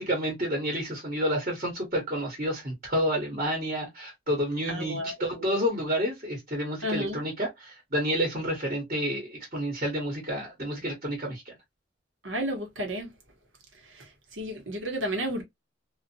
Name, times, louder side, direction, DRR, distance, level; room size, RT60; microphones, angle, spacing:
voice 1, 0.0-11.5, equal, 40° right, 1.1 m, -29 dB
voice 2, 4.7-5.1 5.4-5.5 6.8-7.2 12.2-13.1 13.8-15.4, equal, 85° right, 1.1 m, -32 dB
2.6 x 2.4 x 2.6 m
head